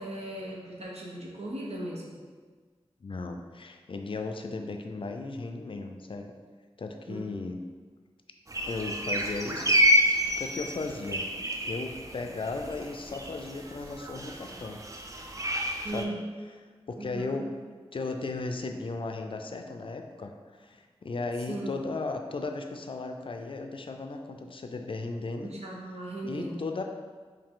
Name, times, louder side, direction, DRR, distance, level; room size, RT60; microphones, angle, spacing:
voice 1, 0.0-2.1 7.1-7.2 15.8-16.3 17.0-17.4 21.5-21.8 25.4-26.8, right 1 dB, 80° right, -4 dB, 0.9 m, -37 dB
voice 2, 3.0-6.3 6.8-7.6 8.6-9.8 10.4-11.3 11.7-14.8 15.9-16.2 16.9-17.5 17.9-20.3 20.6-25.5 26.2-26.8, left 3 dB, 55° left, 4 dB, 0.4 m, -36 dB
sound 1, 8.5-16.0, equal, 30° right, 0.4 m, -29 dB
4.7 x 2.7 x 3.7 m, 1.5 s
wide cardioid pair, 60°, 11 cm